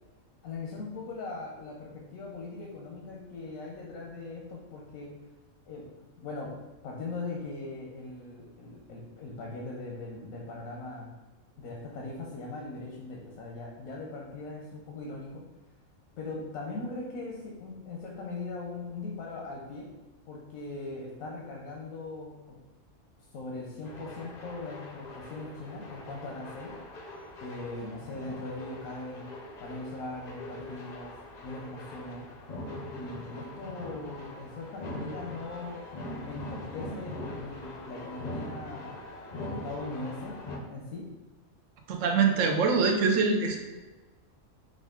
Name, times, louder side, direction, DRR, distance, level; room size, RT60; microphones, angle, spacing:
voice 1, 0.4-5.2 5.7-5.9 6.2-6.6 6.8-11.1 11.6-15.4 16.2-19.9 20.3-22.6 23.3-26.8 27.4-29.3 29.6-31.2 31.4-32.3 32.9-35.8 36.3-39.0 39.3-41.2, left 3 dB, 90° left, -1 dB, 1.1 m, -40 dB
sound 1, 23.8-40.6, left 1 dB, 50° left, 0.5 m, -42 dB
voice 2, 41.9-43.6, right 4 dB, 70° right, 3 dB, 1.0 m, -24 dB
5.0 x 2.5 x 3.6 m, 1.2 s
omnidirectional pair, 1.4 m